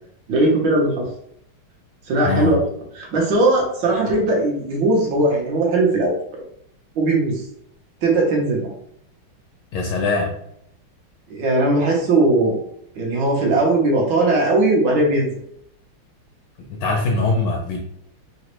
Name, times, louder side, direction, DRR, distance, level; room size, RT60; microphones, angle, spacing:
voice 1, 0.3-1.1 2.1-2.6 3.0-6.4 7.0-7.4 8.0-8.7 11.3-12.6 13.0-15.3, right 2 dB, 65° right, -2 dB, 1.3 m, -19 dB
voice 2, 2.2-2.6 9.7-10.3 16.7-17.8, left 3 dB, 75° left, 1 dB, 1.0 m, -21 dB
4.0 x 2.1 x 2.9 m, 0.71 s
omnidirectional pair, 2.3 m